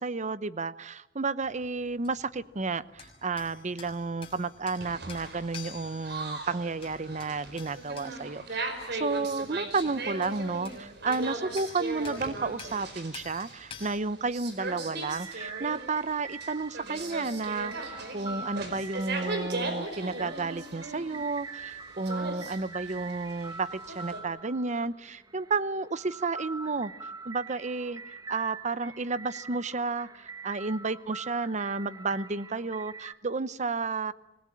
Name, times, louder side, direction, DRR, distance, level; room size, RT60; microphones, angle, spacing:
voice 1, 0.0-26.9 27.2-28.0 28.3-34.1, right 4 dB, 40° right, 16 dB, 0.8 m, -32 dB
sound 1, 1.4-14.0, left 5 dB, 30° left, 6.2 m, -50 dB
sound 2, 4.8-24.2, right 2 dB, 60° right, 4.9 m, -38 dB
sound 3, 15.0-33.1, right 4 dB, 20° right, 1.7 m, -44 dB
26.5 x 20.0 x 8.9 m, 0.96 s
head